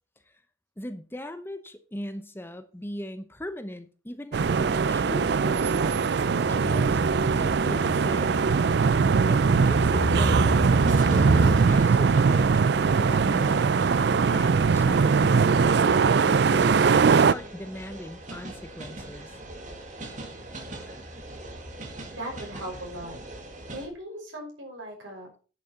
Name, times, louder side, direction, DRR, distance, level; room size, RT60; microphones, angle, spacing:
voice 1, 0.8-6.1 6.3-7.0 7.3-8.8 9.3-13.8 14.3-19.4, left 1 dB, 10° left, 0.7 m, -39 dB
sound 1, 4.3-23.9, equal, 40° right, 2.1 m, -35 dB
sound 2, 4.3-17.3, right 5 dB, 55° right, 0.4 m, -21 dB
voice 2, 22.1-23.1 23.7-25.4, right 1 dB, 85° right, 5.6 m, -38 dB
10.0 x 6.7 x 5.8 m
head